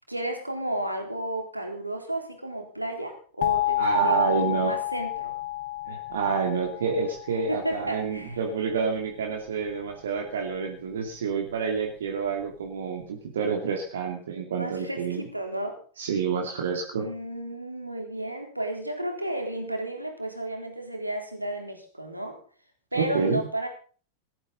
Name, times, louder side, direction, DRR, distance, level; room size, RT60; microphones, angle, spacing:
voice 1, 0.0-5.3 7.5-8.4 14.5-15.8 16.9-22.4 22.9-23.7, right 1 dB, 85° right, 4 dB, 3.6 m, -33 dB
sound 1, 3.4-8.2, left 16 dB, 55° left, 0.9 m, -30 dB
voice 2, 3.8-4.7 5.9-15.2 16.0-17.1 23.0-23.4, right 5 dB, 65° right, 2 dB, 2.6 m, -28 dB
18.5 x 13.5 x 4.0 m, 0.42 s
figure-of-eight pair, 90°, 0 cm